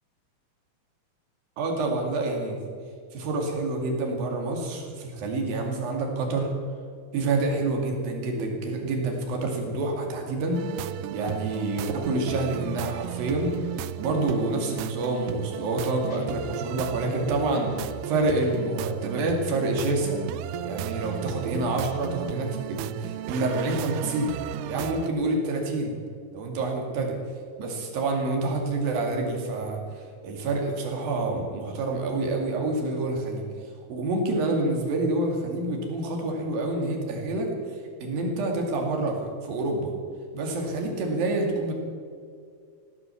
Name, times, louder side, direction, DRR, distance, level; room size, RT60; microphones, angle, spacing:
voice 1, 1.6-2.7 3.1-6.5 7.1-13.5 14.0-20.2 20.6-24.3 24.6-26.0 26.3-27.2 27.6-33.4 33.9-39.9 40.3-41.7, right 2 dB, 65° right, 2 dB, 4.1 m, -28 dB
sound 1, 8.3-11.7, right 2 dB, 5° right, 5.0 m, -44 dB
sound 2, 10.5-25.1, right 12 dB, 85° right, 2.6 m, -35 dB
Guitar, 16.1-16.9, left 3 dB, 85° left, 3.6 m, -42 dB
16.5 x 12.5 x 7.1 m, 2.3 s
omnidirectional pair, 4.5 m